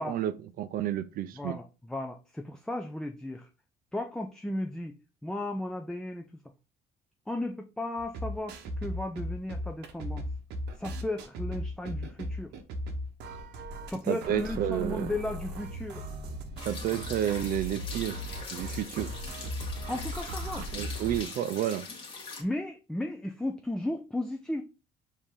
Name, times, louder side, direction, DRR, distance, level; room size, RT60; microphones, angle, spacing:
voice 1, 0.0-1.6 14.1-15.1 16.6-18.3 18.5-19.2 20.7-21.9, right 11 dB, 60° right, 0.5 m, -31 dB
voice 2, 1.4-3.5 3.9-5.0 5.2-6.3 7.3-10.3 10.8-12.5 13.9-16.1 19.9-20.7 22.4-24.6, left 1 dB, 5° left, 0.4 m, -35 dB
sound 1, 8.0-21.2, equal, 80° right, 0.9 m, -37 dB
sound 2, 16.6-22.4, left 4 dB, 30° left, 1.3 m, -42 dB
4.8 x 2.8 x 3.5 m
cardioid pair, 110°, 17 cm